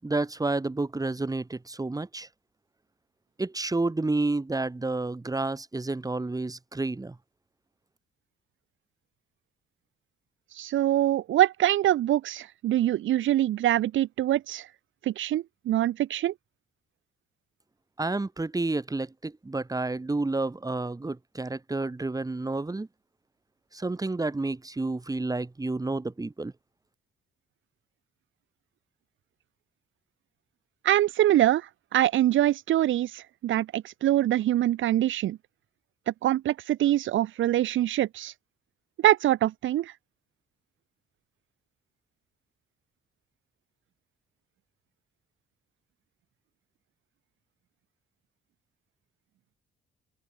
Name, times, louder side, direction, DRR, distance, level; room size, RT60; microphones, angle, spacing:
voice 1, 0.0-2.3 3.4-7.2 18.0-22.9 23.7-26.5, right 2 dB, 20° right, 5.4 m, -30 dB
voice 2, 10.5-14.7 15.0-16.3 30.8-35.4 36.1-38.3 39.0-39.9, right 13 dB, 75° right, 1.5 m, -24 dB
open air
cardioid pair, 90°, 20 cm